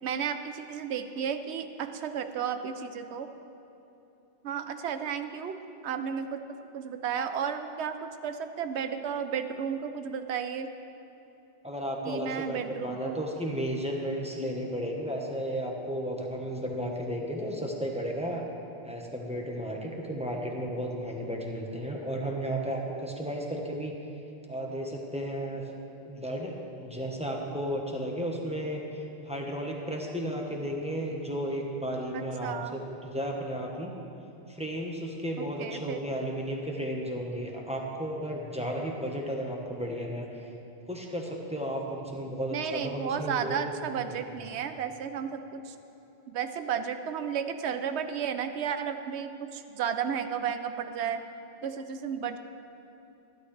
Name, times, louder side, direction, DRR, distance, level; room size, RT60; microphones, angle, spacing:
voice 1, 0.0-3.3 4.4-5.6 5.8-6.4 6.7-10.7 12.0-13.2 32.1-32.8 35.4-36.0 42.5-45.7 46.3-51.2 51.6-52.4, right 7 dB, 85° right, 9 dB, 0.9 m, -33 dB
voice 2, 11.6-18.4 18.8-24.0 24.5-25.7 26.0-33.9 34.5-40.4 40.9-43.8, equal, 5° right, -1 dB, 1.1 m, -34 dB
13.5 x 12.0 x 3.3 m, 3.0 s
omnidirectional pair, 1.1 m